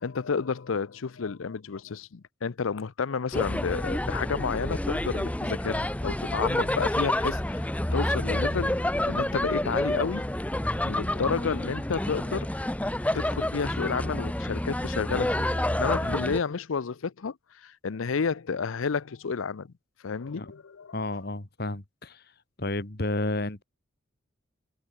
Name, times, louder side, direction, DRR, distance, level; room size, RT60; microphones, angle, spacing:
voice 1, 0.0-10.3 10.8-12.5 13.1-19.7 20.0-21.2, left 5 dB, 85° left, 0.6 m, -31 dB
sound 1, 3.3-16.4, left 1 dB, 5° left, 0.6 m, -29 dB
voice 2, 20.9-22.3 22.6-23.6, left 2 dB, 50° left, 1.9 m, -31 dB
head